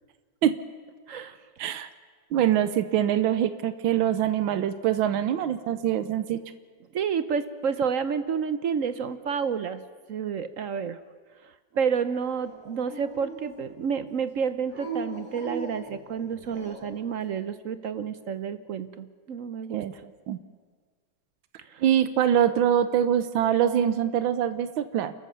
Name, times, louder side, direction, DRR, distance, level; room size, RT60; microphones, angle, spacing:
voice 1, 2.3-6.4 19.7-19.9 20.3-20.4 21.8-25.1, right 10 dB, 90° right, 12 dB, 1.6 m, -24 dB
voice 2, 6.9-9.8 10.1-11.0 11.7-20.0 21.7-21.8, right 6 dB, 60° right, 12 dB, 0.9 m, -30 dB
Dog, 12.3-13.8 14.7-17.0, right 3 dB, 20° right, 6.9 m, -39 dB
29.5 x 14.0 x 6.8 m, 1.6 s
omnidirectional pair, 2.1 m